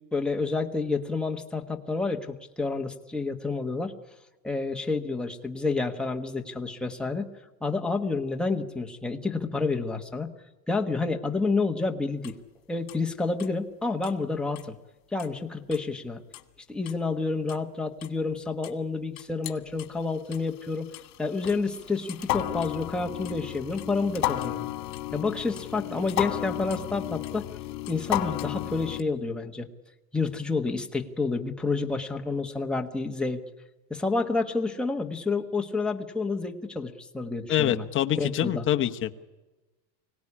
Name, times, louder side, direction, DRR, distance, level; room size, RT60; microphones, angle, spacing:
voice 1, 0.1-3.9 4.4-7.3 7.6-10.3 10.7-12.3 12.7-14.7 15.1-16.2 16.7-20.9 21.2-24.7 25.1-27.5 27.9-29.7 30.1-33.4 33.9-37.9 38.2-38.6, left 3 dB, ahead, 2 dB, 1.3 m, -29 dB
sound 1, 12.2-12.3 12.9-13.0 13.4-13.5 14.0-14.1 14.6-14.7 15.2-15.3 15.7-15.8 16.3-16.4 16.9-17.0 17.5-17.6 18.0-18.1 18.6-18.7 19.2-19.9 20.3-29.0, left 15 dB, 70° left, 2.1 m, -33 dB
voice 2, 37.5-39.2, left 11 dB, 25° left, 6 dB, 1.0 m, -26 dB
24.5 x 18.0 x 9.8 m, 1.2 s
supercardioid pair, 145°, 50 cm